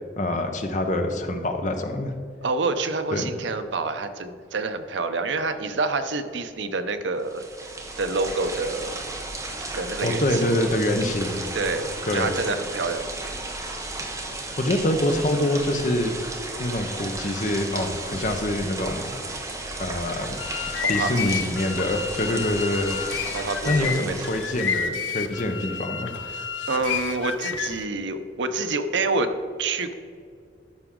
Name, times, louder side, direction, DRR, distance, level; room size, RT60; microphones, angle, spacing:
voice 1, 0.2-2.1 3.1-3.3 10.0-11.4 12.1-12.3 14.6-16.2 16.6-19.0 19.8-20.4 20.9-23.0 23.6-26.1, left 1 dB, 40° left, 6 dB, 0.8 m, -25 dB
voice 2, 2.4-7.4 8.0-9.0 9.7-10.4 10.7-10.8 11.5-13.1 20.8-21.5 23.3-24.5 26.3-29.3 29.6-29.9, right 3 dB, 75° right, 9 dB, 0.7 m, -28 dB
sound 1, 7.2-24.8, right 2 dB, 15° right, 1.0 m, -34 dB
sound 2, 20.2-27.9, left 6 dB, 90° left, 0.7 m, -30 dB
13.0 x 5.9 x 3.8 m, 2.2 s
head